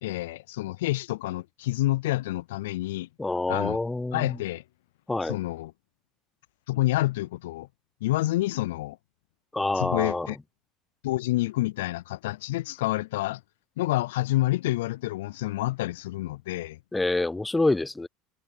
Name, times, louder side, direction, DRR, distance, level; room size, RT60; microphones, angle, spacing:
voice 1, 0.0-3.1 3.5-3.8 4.1-4.6 5.2-5.7 6.7-7.7 8.0-9.0 9.8-10.4 11.0-13.4 13.8-16.8, left 17 dB, 80° left, 0.3 m, -28 dB
voice 2, 3.2-4.4 5.1-5.4 9.5-10.3 16.9-18.1, left 2 dB, 10° left, 0.4 m, -26 dB
hypercardioid pair, 80°, 0 cm